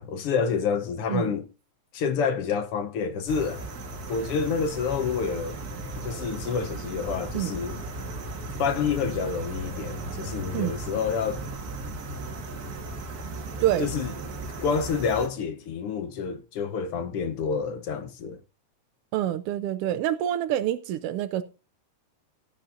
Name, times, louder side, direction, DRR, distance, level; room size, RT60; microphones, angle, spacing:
voice 1, 0.0-1.5 1.9-3.7 4.1-5.6 6.0-7.8 8.6-11.4 13.8-14.1 14.6-18.4, left 6 dB, 65° left, 1.5 m, -28 dB
sound 1, 3.3-15.3, right 2 dB, 40° right, 1.6 m, -36 dB
voice 2, 19.1-21.4, right 12 dB, 80° right, 1.3 m, -26 dB
17.5 x 8.6 x 2.6 m
omnidirectional pair, 3.3 m